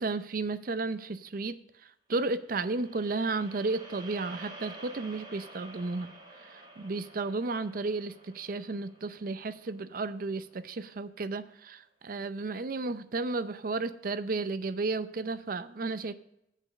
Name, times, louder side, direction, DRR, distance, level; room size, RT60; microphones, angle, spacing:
voice 1, 0.0-1.6 2.1-6.1 6.5-16.1, right 3 dB, 55° right, 12 dB, 0.5 m, -33 dB
sound 1, 2.4-10.7, right 2 dB, 25° right, 2.1 m, -50 dB
8.5 x 5.3 x 6.4 m, 0.80 s
head